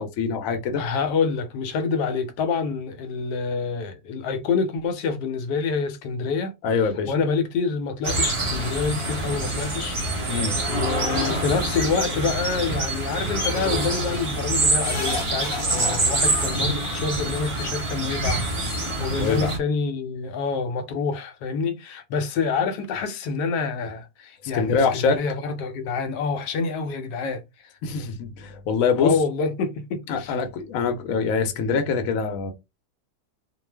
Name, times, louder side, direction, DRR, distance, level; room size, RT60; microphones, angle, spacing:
voice 1, 0.0-0.8 6.6-7.1 10.3-10.6 19.2-19.5 24.5-25.2 27.8-29.1 30.1-32.5, left 5 dB, 65° left, 1.0 m, -24 dB
voice 2, 0.8-6.5 7.1-10.0 10.7-27.4 29.0-30.4, left 5 dB, 90° left, 1.2 m, -27 dB
sound 1, 8.0-19.6, right 2 dB, 30° right, 0.5 m, -26 dB
sound 2, 13.4-13.7 14.8-16.5 17.7-17.8 18.0-18.1, left 3 dB, 40° left, 1.0 m, -32 dB
2.5 x 2.3 x 3.2 m
omnidirectional pair, 1.7 m